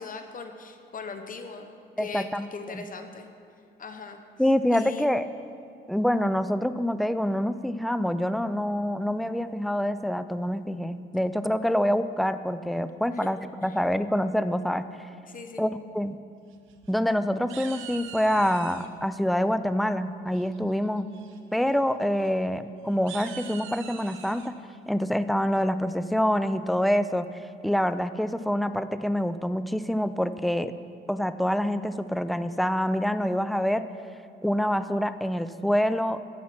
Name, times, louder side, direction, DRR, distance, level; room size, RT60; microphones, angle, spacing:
voice 1, 0.0-1.7 2.0-3.3 3.8-4.2 4.7-5.1 13.1-13.3 13.6-13.8 15.3-15.7, left 4 dB, 45° left, 7 dB, 1.0 m, -40 dB
voice 2, 2.0-2.5 2.7-2.8 4.4-5.3 5.9-14.8 15.6-16.2 16.9-21.1 21.5-24.5 24.9-27.3 27.6-30.7 31.1-33.8 34.4-36.2, equal, ahead, 12 dB, 0.4 m, -26 dB
sound 1, 16.5-17.1 17.5-18.9 20.3-20.7 21.1-21.4 21.6-21.8 22.2-22.3 22.9-24.5, right 8 dB, 90° right, 0.8 m, -43 dB
15.0 x 5.8 x 5.9 m, 2.4 s
cardioid pair, 90°, 20 cm